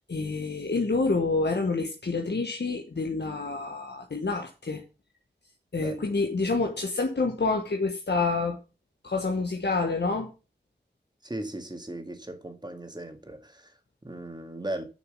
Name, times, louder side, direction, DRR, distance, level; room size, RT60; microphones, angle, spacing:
voice 1, 0.1-4.8 5.7-8.6 9.0-10.3, left 3 dB, 65° left, 1.2 m, -28 dB
voice 2, 5.8-6.1 11.2-14.8, right 1 dB, 20° right, 1.9 m, -38 dB
7.1 x 6.3 x 6.6 m
wide cardioid pair, 50°, 19 cm